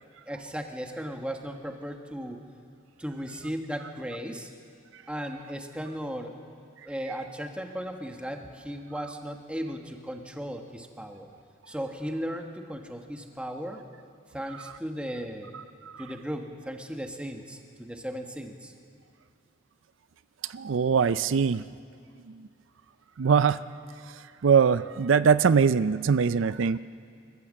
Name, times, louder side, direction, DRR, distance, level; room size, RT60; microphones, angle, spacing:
voice 1, 0.3-2.4 3.0-4.5 5.1-6.4 6.8-11.3 11.7-13.8 14.3-15.5 16.0-18.7, equal, 5° right, 3 dB, 1.4 m, -36 dB
voice 2, 20.5-21.6 23.2-23.6 24.4-26.8, right 6 dB, 75° right, 14 dB, 0.4 m, -22 dB
26.0 x 14.5 x 7.5 m, 2.3 s
head